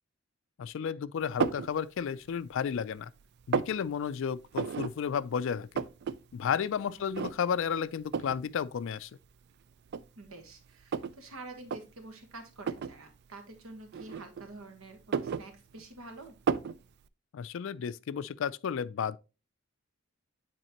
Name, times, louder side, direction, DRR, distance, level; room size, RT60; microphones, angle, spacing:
voice 1, 0.6-3.1 3.5-5.8 6.3-9.1 17.3-19.2, left 7 dB, 60° left, 0.3 m, -32 dB
sound 1, 1.4-1.7 2.3-2.9 3.2-3.8 4.5-4.9 5.2-5.3 5.5-6.2 6.5-6.6 7.1-7.6 8.1-8.4 9.2-9.3 9.9-11.2 11.6-11.8 12.6-13.0 13.9-14.6 14.9-16.0 16.5-16.8, right 6 dB, 50° right, 0.3 m, -32 dB
voice 2, 6.9-7.3 10.2-16.3, right 2 dB, 75° right, 1.3 m, -48 dB
9.1 x 4.2 x 2.9 m
head